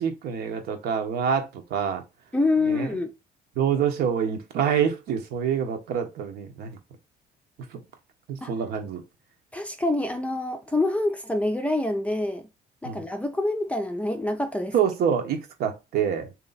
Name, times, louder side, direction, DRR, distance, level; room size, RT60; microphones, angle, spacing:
voice 1, 0.0-2.0 2.7-2.9 3.6-6.8 7.7-7.8 8.3-9.0 12.8-13.0 14.7-16.3, right 8 dB, 70° right, 1.0 m, -26 dB
voice 2, 2.3-3.1 8.4-8.5 9.5-12.5 12.8-14.7, left 2 dB, 10° left, 0.5 m, -26 dB
3.0 x 2.9 x 4.0 m
cardioid pair, 110°, 17 cm